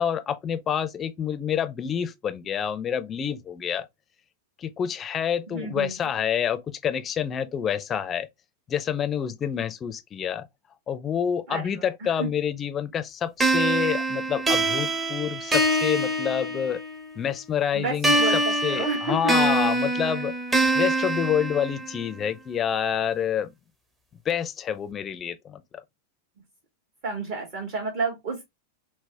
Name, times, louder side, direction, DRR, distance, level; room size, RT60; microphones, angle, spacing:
voice 1, 0.0-3.9 4.6-8.3 8.7-10.5 10.9-16.8 17.1-20.3 20.7-23.5 24.2-25.8, left 8 dB, 25° left, 0.7 m, -28 dB
voice 2, 5.5-5.9 11.5-12.3 17.7-19.4 27.0-28.4, right 3 dB, 45° right, 1.8 m, -31 dB
sound 1, 13.4-17.0 18.0-22.0, right 1 dB, 15° right, 1.0 m, -24 dB
5.9 x 2.3 x 3.4 m
figure-of-eight pair, 90°, 0 cm